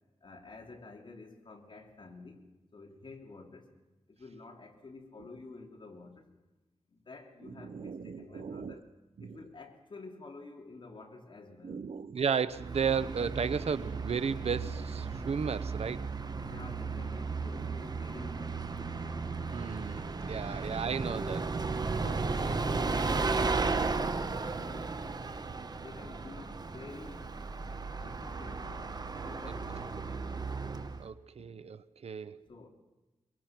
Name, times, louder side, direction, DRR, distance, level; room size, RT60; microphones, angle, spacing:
voice 1, 0.2-2.5 2.7-3.7 4.1-6.3 6.9-8.9 9.2-11.9 16.3-18.7 20.4-20.8 22.0-25.3 25.7-27.3 27.9-30.0 32.4-32.7, left 3 dB, 45° left, 2 dB, 2.9 m, -50 dB
voice 2, 7.6-8.7 9.2-9.4 11.6-16.1 19.5-22.5 29.5-29.6 31.0-32.4, right 6 dB, 65° right, 15 dB, 0.8 m, -35 dB
Bus, 12.5-31.1, right 4 dB, 35° right, 1.0 m, -35 dB
23.5 x 22.5 x 5.9 m, 1.1 s
wide cardioid pair, 130°, 11 cm